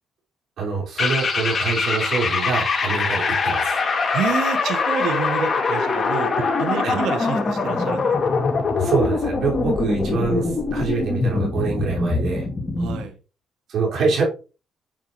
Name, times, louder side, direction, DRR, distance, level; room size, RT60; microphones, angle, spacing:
voice 1, 0.6-3.8 6.8-7.0 8.8-12.5 13.7-14.3, right 4 dB, 70° right, -3 dB, 5.5 m, -25 dB
sound 1, 1.0-13.0, left 4 dB, 35° left, 2.6 m, -23 dB
voice 2, 4.1-6.3 6.6-8.1 12.8-13.2, right 7 dB, 85° right, 7 dB, 1.6 m, -28 dB
9.5 x 7.4 x 3.2 m, 0.33 s
cardioid pair, 90°, 0 cm